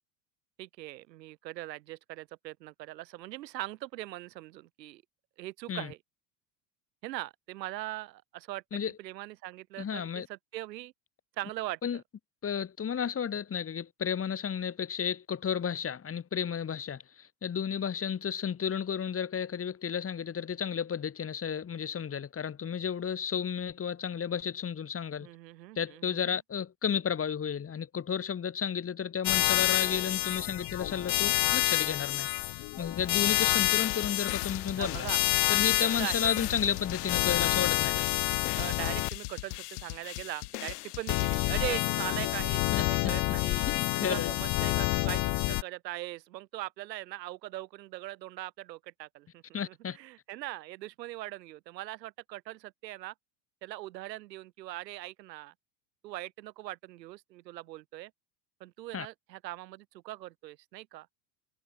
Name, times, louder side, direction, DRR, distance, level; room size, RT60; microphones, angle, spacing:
voice 1, 0.6-5.0 5.4-6.0 7.0-8.6 9.0-10.9 11.4-11.8 25.2-26.4 34.8-35.2 35.8-36.3 38.6-43.7 44.0-53.1 53.6-55.5 56.0-58.1 58.6-61.1, right 16 dB, 80° right, 2.8 m, -41 dB
voice 2, 9.8-10.3 11.8-12.0 12.4-25.3 25.7-35.1 35.5-38.1 42.7-42.9 43.7-44.3 49.5-50.0 58.9-59.1, left 7 dB, 25° left, 3.4 m, -32 dB
sound 1, 29.2-39.1 41.1-45.6, left 23 dB, 45° left, 0.8 m, -28 dB
sound 2, 33.2-42.1, left 23 dB, 70° left, 1.9 m, -40 dB
hypercardioid pair, 100°, 49 cm